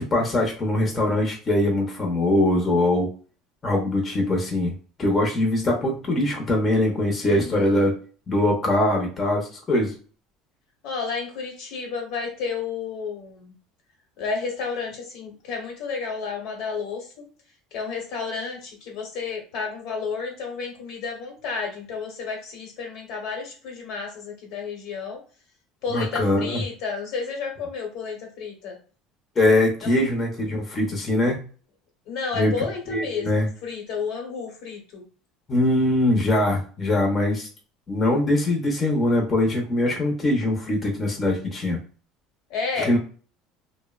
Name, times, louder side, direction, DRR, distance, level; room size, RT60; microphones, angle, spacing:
voice 1, 0.0-3.1 3.6-4.7 5.0-8.0 8.3-9.9 25.9-26.6 29.4-31.4 32.3-32.5 32.9-33.5 35.5-37.5 37.9-41.8 42.8-43.0, left 1 dB, 25° left, 0 dB, 0.6 m, -22 dB
voice 2, 7.2-7.9 10.8-13.6 14.2-17.3 17.7-25.2 25.8-28.8 29.8-30.0 32.1-35.0 42.5-42.9, left 5 dB, 65° left, 2 dB, 1.0 m, -31 dB
2.7 x 2.0 x 2.3 m, 0.39 s
supercardioid pair, 120°, 0 cm